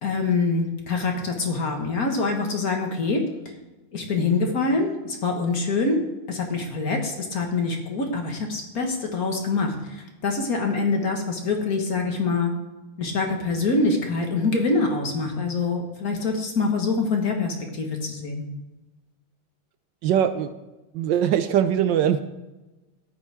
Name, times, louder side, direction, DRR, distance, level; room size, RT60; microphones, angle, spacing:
voice 1, 0.0-3.2 3.9-6.0 6.3-12.5 13.0-18.4, left 3 dB, 45° left, 3 dB, 1.8 m, -25 dB
voice 2, 20.0-20.5 20.9-22.2, right 9 dB, 70° right, 11 dB, 1.1 m, -21 dB
14.5 x 10.0 x 3.5 m, 1.1 s
omnidirectional pair, 2.4 m